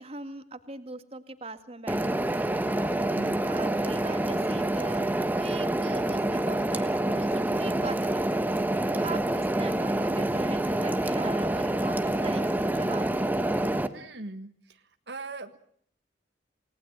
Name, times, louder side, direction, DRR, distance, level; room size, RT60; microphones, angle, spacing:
voice 1, 0.0-5.1 5.3-8.5 8.9-13.5, right 2 dB, 35° right, 9 dB, 2.1 m, -41 dB
sound 1, 1.9-13.9, right 1 dB, 10° right, 1.3 m, -27 dB
voice 2, 13.9-14.5 15.1-15.6, right 3 dB, 70° right, 9 dB, 1.6 m, -39 dB
28.5 x 19.0 x 9.0 m, 0.65 s
head